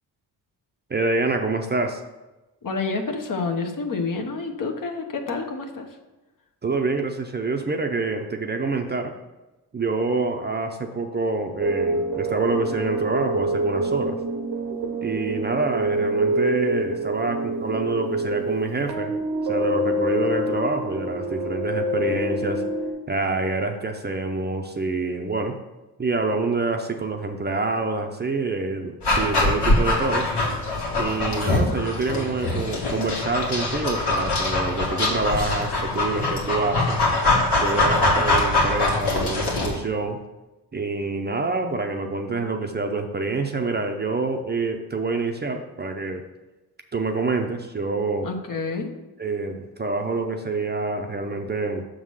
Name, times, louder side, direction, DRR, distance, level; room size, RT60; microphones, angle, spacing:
voice 1, 0.9-2.0 6.6-9.1 9.7-14.2 15.0-19.1 19.4-22.6 23.1-25.6 26.0-30.3 30.9-37.0 37.6-40.2 40.7-46.2 46.9-48.3 49.2-51.9, right 3 dB, 25° right, 5 dB, 0.6 m, -26 dB
voice 2, 2.6-6.0 48.2-48.9, left 4 dB, 55° left, 3 dB, 1.1 m, -28 dB
sound 1, 11.6-22.9, right 1 dB, 85° right, 1.0 m, -26 dB
Dog, 29.0-39.8, left 2 dB, 80° left, 1.9 m, -23 dB
6.3 x 3.8 x 6.3 m, 1.1 s
cardioid pair, 95°, 40 cm